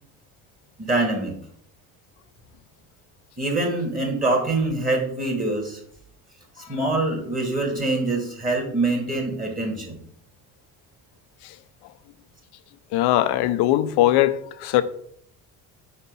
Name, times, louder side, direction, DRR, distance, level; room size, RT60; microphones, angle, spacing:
voice 1, 0.8-1.4 3.4-5.8 6.6-10.0, right 2 dB, 20° right, 1.7 m, -24 dB
voice 2, 12.9-14.8, left 14 dB, 80° left, 0.6 m, -20 dB
4.4 x 4.3 x 5.4 m
cardioid pair, 90°, 39 cm